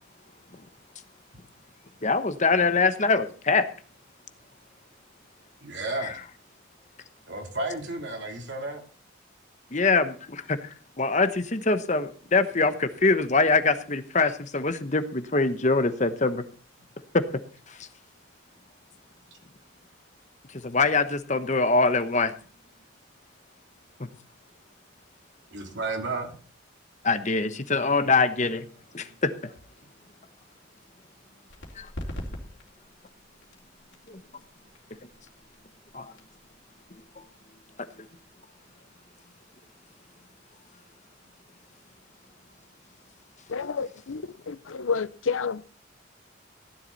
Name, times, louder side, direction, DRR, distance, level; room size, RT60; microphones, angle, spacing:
voice 1, 2.0-3.7 6.0-6.2 9.7-16.4 17.1-17.2 17.7-17.9 20.5-22.3 24.0-24.1 27.0-28.7 28.9-29.5 31.7-31.9 34.1-34.2 35.0-35.1 35.9-36.1 36.9-37.2 37.8-38.1, left 3 dB, 35° left, 1.0 m, -24 dB
voice 2, 5.6-6.2 7.3-8.8 25.5-26.3, right 2 dB, 60° right, 3.3 m, -32 dB
sound 1, 31.5-38.8, equal, 65° left, 3.2 m, -44 dB
voice 3, 43.5-45.7, left 5 dB, 80° left, 0.6 m, -30 dB
15.5 x 11.0 x 4.1 m
head